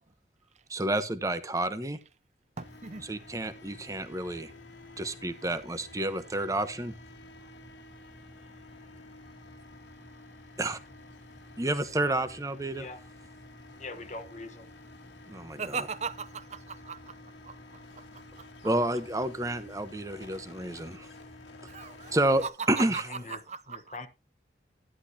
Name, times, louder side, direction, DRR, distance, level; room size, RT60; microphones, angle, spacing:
voice 1, 0.7-2.0 3.1-4.5 5.0-6.9 10.6-10.8 11.6-12.9 15.3-15.9 18.6-21.1 22.1-23.1, right 1 dB, 20° right, 0.9 m, -30 dB
sound 1, 2.6-22.5, left 2 dB, 85° left, 2.0 m, -50 dB
voice 2, 2.6-3.1 15.6-17.2 17.4-18.4 21.6-22.2 22.4-23.0 23.3-24.0, right 5 dB, 40° right, 0.6 m, -39 dB
voice 3, 12.7-13.0 13.8-14.7 22.8-23.4 23.7-24.1, left 3 dB, 40° left, 1.1 m, -42 dB
12.0 x 11.0 x 2.8 m
head